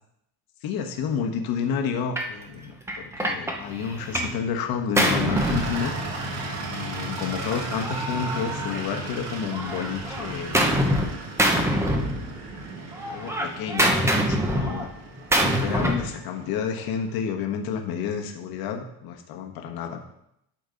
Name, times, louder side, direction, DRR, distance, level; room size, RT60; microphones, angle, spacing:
voice 1, 0.6-10.6 13.0-14.9 15.4-20.0, left 7 dB, 65° left, 4 dB, 1.4 m, -30 dB
Gunshot gunfire, 2.2-2.4 2.9-4.4 4.7-6.4 7.3-9.2 9.5-11.1 11.4-12.6 12.9-16.1, equal, 5° right, 0.8 m, -25 dB
sound 1, 5.3-17.1, right 2 dB, 40° right, 1.8 m, -35 dB
12.0 x 5.3 x 4.0 m, 0.78 s
cardioid pair, 155°, 39 cm